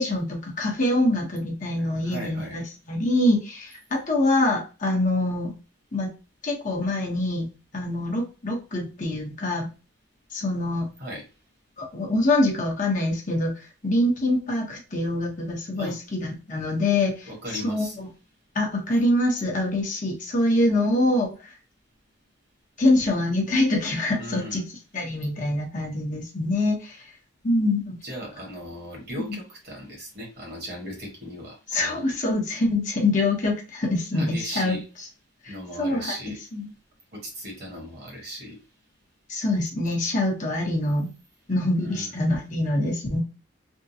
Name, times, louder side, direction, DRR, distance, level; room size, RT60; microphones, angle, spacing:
voice 1, 0.0-5.5 5.9-6.1 6.4-7.5 7.7-9.7 10.3-10.9 11.8-17.3 17.6-18.1 18.5-21.5 22.8-24.6 24.9-27.0 27.4-28.0 29.1-29.2 31.7-34.8 35.4-36.1 36.5-36.7 39.3-41.1 41.5-43.2, left 1 dB, 40° left, -1 dB, 0.9 m, -25 dB
voice 2, 1.8-2.6 11.0-11.2 15.7-16.0 17.2-18.0 24.2-24.6 28.0-32.0 34.1-34.8 35.5-36.4 37.1-38.6 41.8-42.1, equal, 50° right, 0 dB, 1.4 m, -37 dB
3.5 x 2.2 x 2.7 m, 0.31 s
head